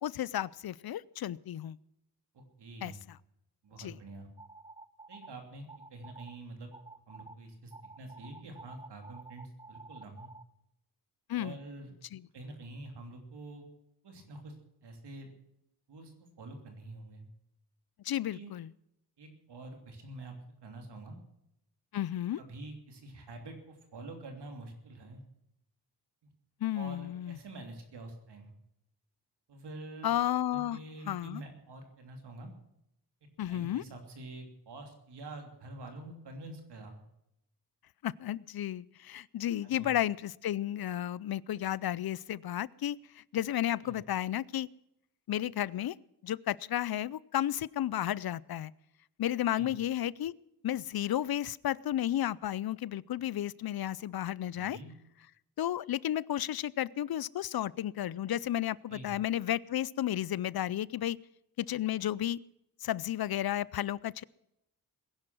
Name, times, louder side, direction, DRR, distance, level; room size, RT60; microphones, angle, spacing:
voice 1, 0.0-1.8 2.8-3.2 3.8-4.0 11.3-11.5 12.1-12.2 18.0-18.7 21.9-22.4 26.6-27.4 30.0-30.8 31.1-31.4 33.4-33.8 38.0-44.7 45.3-46.0 46.2-48.7 49.2-50.3 50.6-54.8 55.6-61.2 61.6-62.4 62.8-64.2, left 12 dB, 65° left, 22 dB, 0.5 m, -33 dB
voice 2, 2.3-3.0 3.6-4.3 5.1-6.7 7.1-10.3 11.4-11.9 12.3-13.6 14.0-14.5 14.8-15.3 15.9-17.2 18.3-18.5 19.2-20.3 20.6-21.2 22.4-25.2 26.7-28.5 29.5-30.1 30.5-32.5 33.5-37.0 39.6-39.9 43.8-44.0 49.5-49.7 54.5-54.9 58.9-59.1, right 2 dB, 90° right, 4 dB, 3.2 m, -47 dB
sound 1, 4.4-5.3 5.7-6.4 6.7-7.3 7.7-10.4, right 3 dB, 15° right, 0.8 m, -50 dB
20.5 x 11.0 x 6.2 m, 0.82 s
wide cardioid pair, 110°, 40 cm